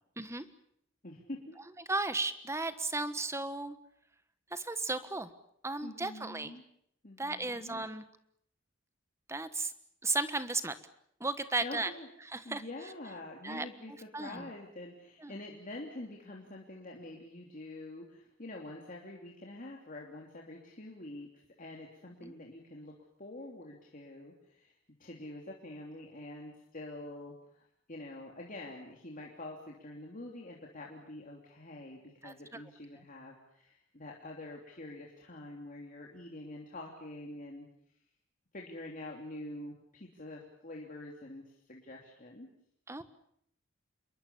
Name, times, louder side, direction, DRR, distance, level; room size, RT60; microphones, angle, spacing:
voice 1, 1.0-1.6 5.8-6.6 7.0-7.8 11.6-12.1 12.4-21.3 21.6-22.9 23.2-24.7 25.0-37.7 38.5-42.5, left 1 dB, 40° left, -1 dB, 3.2 m, -46 dB
voice 2, 1.9-3.8 4.5-5.3 5.6-6.5 7.2-8.0 9.3-9.7 10.0-10.7 11.2-11.9 12.2-12.6 13.4-14.5 15.2-15.3 22.2-22.3 32.2-32.6 33.0-33.1 42.9-43.0, right 3 dB, 15° right, 12 dB, 1.3 m, -35 dB
27.5 x 22.5 x 7.1 m, 0.73 s
head